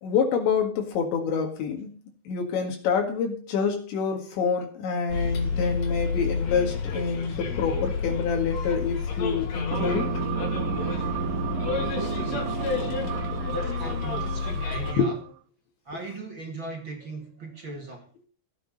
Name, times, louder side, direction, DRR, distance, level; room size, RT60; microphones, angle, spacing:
voice 1, 0.0-1.9 2.3-10.1 15.0-15.1, left 5 dB, 75° left, 4.1 m, -27 dB
Bus, 5.1-14.9, left 5 dB, 50° left, 3.6 m, -30 dB
sound 1, 9.7-15.3, right 12 dB, 80° right, 3.1 m, -32 dB
voice 2, 11.8-13.2 13.5-15.2 15.8-18.1, right 3 dB, 45° right, 1.6 m, -39 dB
15.5 x 9.8 x 5.2 m
omnidirectional pair, 5.3 m